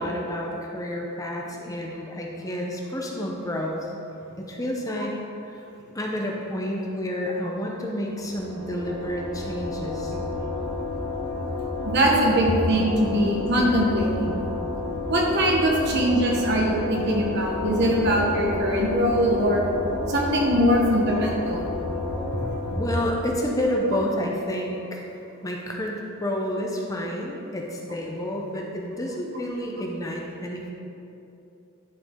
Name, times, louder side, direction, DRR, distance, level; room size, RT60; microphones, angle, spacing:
voice 1, 0.0-3.9 4.4-5.6 5.9-10.1 15.7-15.8 22.7-25.1 25.4-30.7, equal, 15° left, -1 dB, 0.7 m, -29 dB
sound 1, 8.1-24.0, left 2 dB, 65° left, 1.6 m, -31 dB
voice 2, 11.8-14.4 15.1-19.6 20.1-21.7, equal, 50° right, -1 dB, 1.2 m, -22 dB
11.0 x 4.6 x 3.8 m, 2.7 s
head